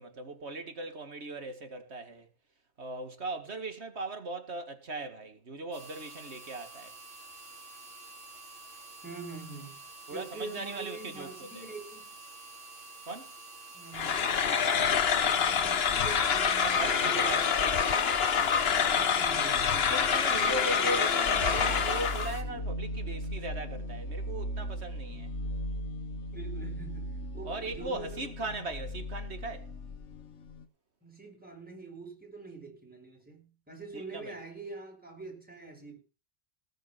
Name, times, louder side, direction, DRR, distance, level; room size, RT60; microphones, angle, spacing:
voice 1, 0.0-2.3 2.8-6.9 10.1-11.7 13.1-13.3 16.6-17.5 19.3-25.3 27.4-29.7 33.9-34.4, right 2 dB, 65° right, 2.2 m, -38 dB
sound 1, 5.7-22.4, right 3 dB, 85° right, 4.0 m, -48 dB
voice 2, 9.0-9.8 10.1-12.0 13.7-14.6 15.4-18.0 18.4-18.6 19.0-21.8 26.3-28.3 31.0-36.0, right 3 dB, 5° right, 5.8 m, -44 dB
sound 2, 13.9-22.4, left 7 dB, 60° left, 1.2 m, -26 dB
sound 3, 21.3-30.7, equal, 80° left, 1.5 m, -38 dB
18.5 x 6.5 x 5.8 m
omnidirectional pair, 1.2 m